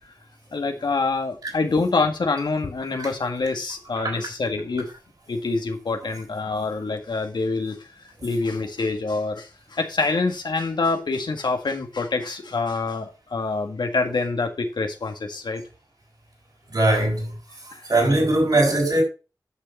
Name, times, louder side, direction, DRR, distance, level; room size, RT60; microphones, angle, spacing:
voice 1, 0.5-4.9 5.3-7.8 8.2-15.6 17.7-17.8, left 3 dB, 80° left, 1.9 m, -26 dB
voice 2, 16.7-17.3 17.9-19.0, right 2 dB, 65° right, 6.1 m, -21 dB
9.9 x 6.7 x 4.4 m
wide cardioid pair, 60°, 7 cm